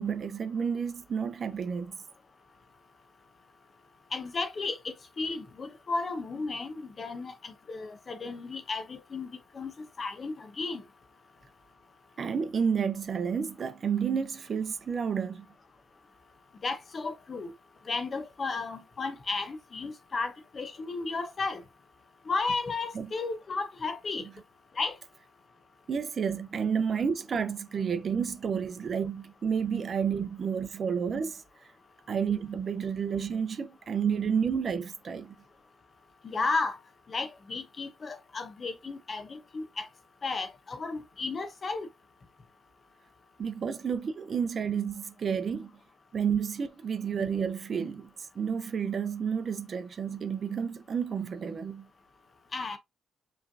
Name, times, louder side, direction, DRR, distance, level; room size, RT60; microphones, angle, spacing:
voice 1, 0.0-1.9 12.2-15.5 22.9-23.1 25.9-31.4 32.1-35.3 43.4-45.7 46.1-51.9, right 6 dB, 45° right, 0.5 m, -30 dB
voice 2, 4.1-9.3 9.5-9.7 10.0-10.8 16.6-17.5 17.9-21.6 22.3-24.3 24.8-25.0 36.2-36.8 37.1-39.9 40.2-41.9 52.5-52.8, left 3 dB, 40° left, 0.8 m, -34 dB
4.9 x 3.2 x 2.6 m
cardioid pair, 90°, 0 cm